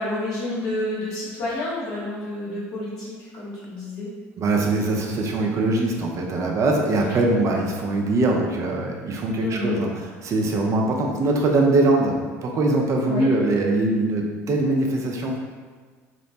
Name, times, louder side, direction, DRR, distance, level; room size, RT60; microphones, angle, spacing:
voice 1, 0.0-4.1 6.8-6.9 9.4-9.8 13.0-13.3, left 2 dB, 60° left, -8 dB, 1.2 m, -29 dB
voice 2, 4.4-9.9 10.2-15.4, right 2 dB, 45° right, 0 dB, 0.5 m, -22 dB
2.9 x 2.1 x 2.7 m, 1.5 s
hypercardioid pair, 65°, 7 cm